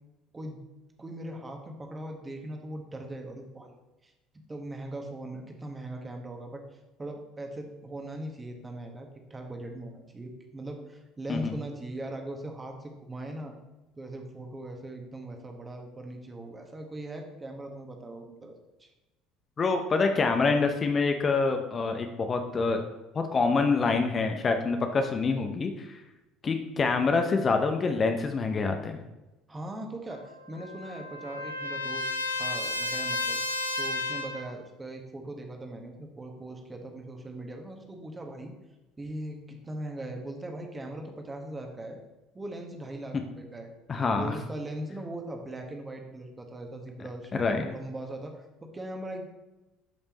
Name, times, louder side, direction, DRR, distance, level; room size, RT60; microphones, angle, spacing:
voice 1, 1.0-4.1 4.5-13.5 14.0-18.5 18.8-18.9 29.5-32.1 32.4-33.4 33.8-38.5 39.0-42.0 42.3-43.7 44.2-49.2, right 1 dB, 20° right, 3 dB, 1.5 m, -40 dB
voice 2, 19.6-22.8 23.1-26.0 26.4-29.0 43.9-44.4 47.3-47.7, left 4 dB, 30° left, 5 dB, 0.8 m, -26 dB
Trumpet, 30.1-34.5, left 2 dB, 85° left, 0.8 m, -32 dB
11.5 x 5.4 x 3.0 m, 1.0 s
figure-of-eight pair, 60°, 0 cm